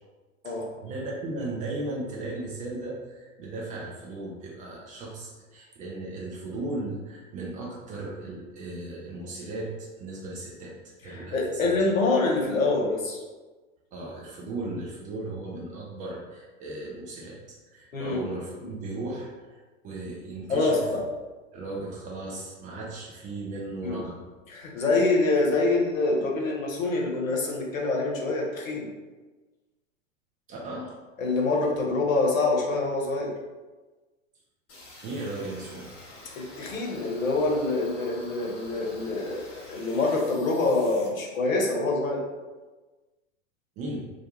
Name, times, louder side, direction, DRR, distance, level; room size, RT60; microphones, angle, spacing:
voice 1, 0.8-10.8 11.0-11.8 13.9-19.5 19.8-20.8 21.5-24.2 30.5-30.9 35.0-35.9 43.8-44.0, right 2 dB, 20° right, -3 dB, 0.3 m, -36 dB
voice 2, 11.1-13.2 17.9-18.3 18.6-18.7 20.5-21.0 23.8-24.0 24.5-28.9 31.2-33.3 36.4-42.2, left 3 dB, 80° left, -1 dB, 0.7 m, -26 dB
sound 1, 34.7-41.1, left 1 dB, 35° left, 1.0 m, -47 dB
2.3 x 2.2 x 2.9 m, 1.2 s
figure-of-eight pair, 90°, 40 cm